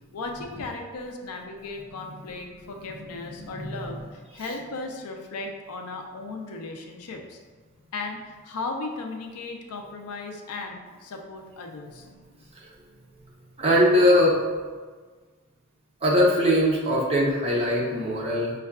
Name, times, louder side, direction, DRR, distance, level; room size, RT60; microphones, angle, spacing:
voice 1, 0.1-7.4 7.9-12.1, left 3 dB, 85° left, 3 dB, 0.4 m, -36 dB
voice 2, 3.3-4.0 12.5-12.7 13.6-14.4 16.0-18.5, equal, 25° right, -4 dB, 0.6 m, -21 dB
5.3 x 2.3 x 2.3 m, 1.4 s
head